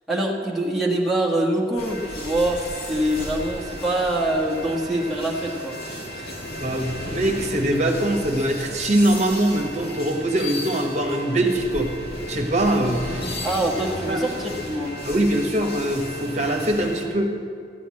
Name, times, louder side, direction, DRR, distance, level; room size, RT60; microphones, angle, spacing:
voice 1, 0.1-5.8 6.1-6.3 13.4-14.9, right 1 dB, ahead, -4 dB, 1.6 m, -24 dB
sound 1, 1.8-17.1, left 1 dB, 55° left, 2.5 m, -34 dB
voice 2, 6.6-11.9 12.3-13.2 14.1-14.2 15.0-17.3, right 1 dB, 40° right, 3 dB, 1.4 m, -22 dB
14.0 x 8.5 x 8.5 m, 2.3 s
head